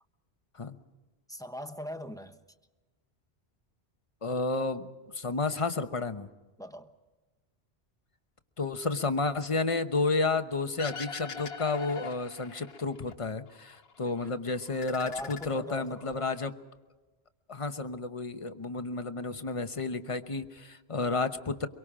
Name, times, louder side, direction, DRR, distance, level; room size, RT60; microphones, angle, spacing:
voice 1, 1.3-2.4 6.6-6.9 14.0-14.4 15.0-16.3, equal, 5° left, 7 dB, 1.0 m, -41 dB
voice 2, 4.2-6.3 8.6-16.5 17.5-21.7, left 3 dB, 30° left, 9 dB, 1.0 m, -31 dB
sound 1, 10.8-13.1 13.5-14.3 14.6-16.1, left 5 dB, 65° left, 1.4 m, -42 dB
24.5 x 23.5 x 5.0 m, 1.2 s
omnidirectional pair, 1.1 m